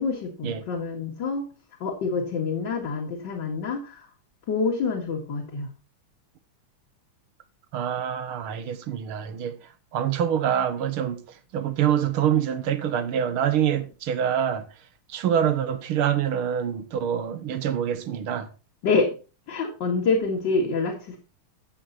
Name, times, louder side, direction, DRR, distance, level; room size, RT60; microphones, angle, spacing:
voice 1, 0.0-1.5 1.8-4.1 4.5-5.7 18.8-19.2 19.5-21.2, left 4 dB, 55° left, 2.7 m, -26 dB
voice 2, 7.7-9.6 9.9-11.2 11.5-14.7 15.1-18.5, right 9 dB, 80° right, 2.0 m, -25 dB
14.0 x 7.9 x 2.7 m
omnidirectional pair, 2.4 m